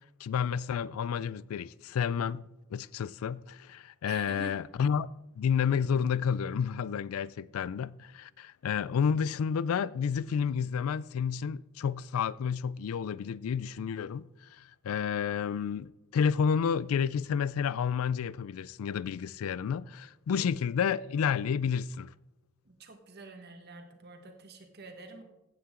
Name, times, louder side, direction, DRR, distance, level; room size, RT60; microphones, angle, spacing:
voice 1, 0.2-5.1 5.4-14.3 14.6-22.1, left 7 dB, 85° left, 0.3 m, -30 dB
voice 2, 4.0-4.6 20.3-20.5 22.6-25.2, right 3 dB, 50° right, 1.6 m, -47 dB
15.5 x 8.7 x 3.7 m
head